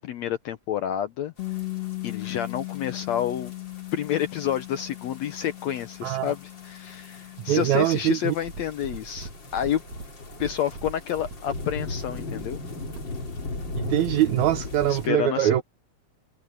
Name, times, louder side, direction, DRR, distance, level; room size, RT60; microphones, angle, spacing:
voice 1, 0.0-1.3 2.0-3.5 3.9-9.8 10.4-12.6 14.9-15.6, left 10 dB, 70° left, 1.7 m, -29 dB
Bass guitar, 1.4-7.6, left 20 dB, 50° left, 3.1 m, -37 dB
sound 1, 1.4-15.1, left 2 dB, 35° left, 3.5 m, -39 dB
voice 2, 6.0-6.3 7.5-8.3 13.8-15.6, right 12 dB, 75° right, 1.8 m, -23 dB
sound 2, 8.4-15.1, right 3 dB, 55° right, 5.1 m, -42 dB
omnidirectional pair, 4.0 m